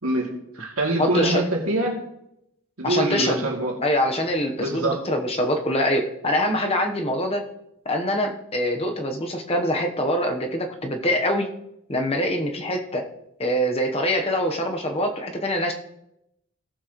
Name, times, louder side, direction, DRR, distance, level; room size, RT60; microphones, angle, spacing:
voice 1, 0.0-2.0 2.8-3.7 4.6-5.0, right 1 dB, 80° right, -1 dB, 2.6 m, -24 dB
voice 2, 1.0-1.4 2.8-3.5 3.8-7.4 7.8-11.5 11.9-13.1 13.4-15.7, equal, 25° left, 4 dB, 1.0 m, -24 dB
18.0 x 7.5 x 3.1 m, 0.82 s
head